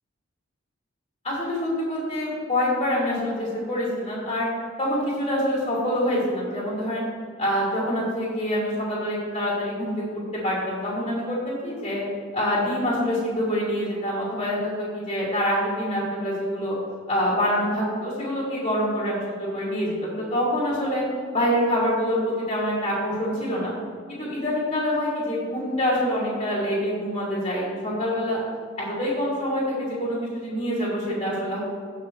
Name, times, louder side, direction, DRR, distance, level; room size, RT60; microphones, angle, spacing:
voice 1, 1.2-4.5 4.8-7.1 7.4-12.0 12.3-16.7 17.1-21.0 21.3-23.7 24.1-28.4 28.8-31.6, equal, 25° left, -6 dB, 2.7 m, -26 dB
16.5 x 6.0 x 3.2 m, 2.2 s
head